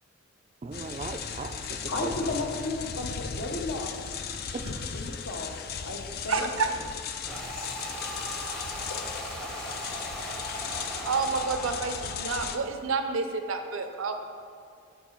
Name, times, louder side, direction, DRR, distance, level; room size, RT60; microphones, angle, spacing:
voice 1, 0.6-2.1 4.5-4.8, right 3 dB, 30° right, 8 dB, 0.3 m, -38 dB
sound 1, 0.7-12.6, left 6 dB, 50° left, 0.4 m, -37 dB
voice 2, 1.9-3.9 4.9-5.5 5.8-6.8 8.8-9.2, left 2 dB, 70° left, 2 dB, 0.9 m, -34 dB
voice 3, 6.3-6.7 11.0-14.1, right 4 dB, 80° right, 6 dB, 0.6 m, -29 dB
sound 2, 7.3-12.3, equal, 5° left, 0.6 m, -38 dB
7.1 x 4.9 x 4.5 m, 2.3 s
head